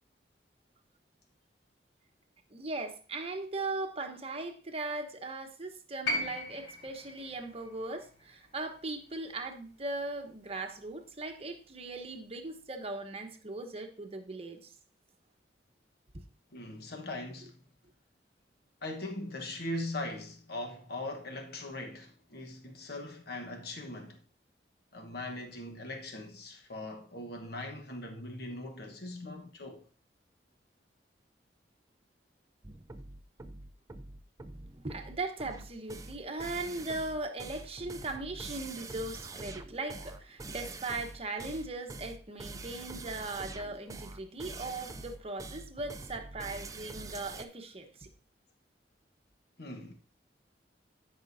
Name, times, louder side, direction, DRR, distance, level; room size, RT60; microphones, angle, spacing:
voice 1, 2.5-14.7 34.8-48.1, right 2 dB, 35° right, 1.0 m, -39 dB
sound 1, 6.0-10.2 11.4-11.5, left 1 dB, 85° left, 4.2 m, -39 dB
voice 2, 16.5-17.6 18.8-24.2 24.9-29.8 49.6-49.9, left 2 dB, 65° left, 1.2 m, -40 dB
sound 2, 32.6-47.4, right 3 dB, 20° right, 0.5 m, -45 dB
13.0 x 5.7 x 2.7 m
head